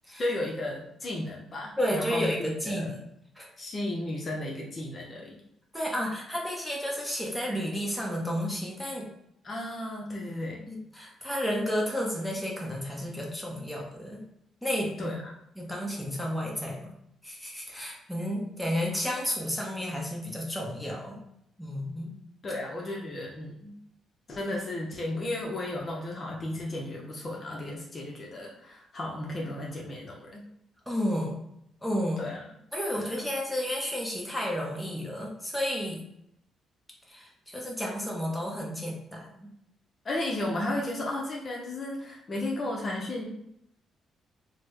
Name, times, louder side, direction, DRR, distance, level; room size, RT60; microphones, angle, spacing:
voice 1, 0.2-2.9 3.6-5.4 9.4-10.7 15.0-15.2 22.4-23.7 24.3-30.4 32.2-32.4 33.0-33.2 40.0-43.2, left 1 dB, 40° left, -2 dB, 0.6 m, -34 dB
voice 2, 1.8-3.0 3.4-3.5 5.7-9.1 10.7-14.2 14.6-15.2 15.6-16.9 17.2-21.2 21.6-22.2 30.9-31.4 31.8-32.2 32.7-36.0 37.1-39.5, equal, ahead, -2 dB, 0.9 m, -32 dB
3.3 x 2.1 x 3.2 m, 0.76 s
cardioid pair, 90°, 0 cm